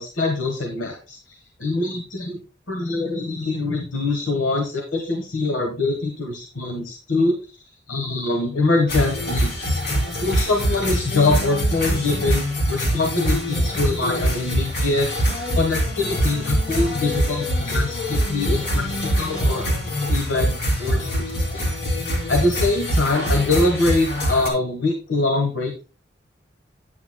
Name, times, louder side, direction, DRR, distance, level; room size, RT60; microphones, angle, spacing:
voice 1, 0.0-2.4 2.7-9.8 10.2-19.7 20.1-21.6 22.3-25.8, left 2 dB, 90° left, 3 dB, 1.3 m, -24 dB
sound 1, 8.9-24.5, equal, 60° left, 2.8 m, -24 dB
9.5 x 8.4 x 2.2 m, 0.33 s
head